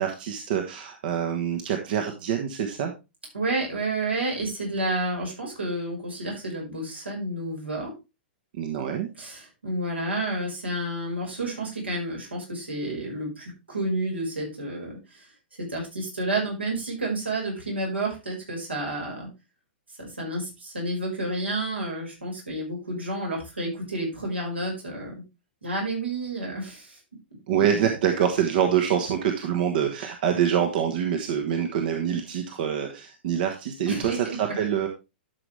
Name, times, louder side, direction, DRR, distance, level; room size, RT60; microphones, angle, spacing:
voice 1, 0.0-2.9 8.5-9.1 27.5-34.9, right 8 dB, 55° right, 4 dB, 1.3 m, -25 dB
voice 2, 3.3-7.9 9.2-15.2 15.6-19.3 20.0-25.2 25.6-27.0 33.9-34.2 34.4-34.5, right 2 dB, 90° right, -2 dB, 5.4 m, -30 dB
12.0 x 6.2 x 3.3 m, 0.26 s
figure-of-eight pair, 105°, 6 cm